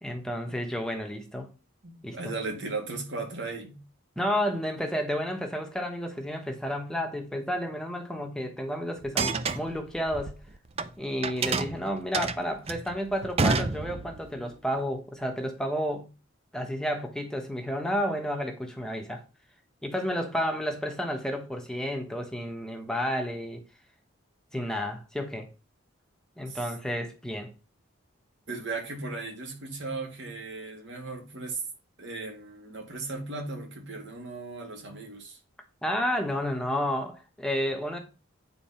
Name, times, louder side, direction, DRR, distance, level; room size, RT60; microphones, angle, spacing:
voice 1, 0.0-1.5 2.0-2.2 4.2-10.3 11.0-16.1 16.5-19.2 19.8-23.6 24.5-25.5 26.4-27.5 35.8-38.0, equal, 5° left, 1.1 m, -31 dB
voice 2, 1.8-3.8 26.5-26.7 28.5-31.6 32.0-35.4, right 3 dB, 60° right, 2.4 m, -36 dB
sound 1, 9.0-10.9 11.2-14.3, right 4 dB, 30° right, 0.5 m, -29 dB
9.3 x 4.2 x 5.7 m
head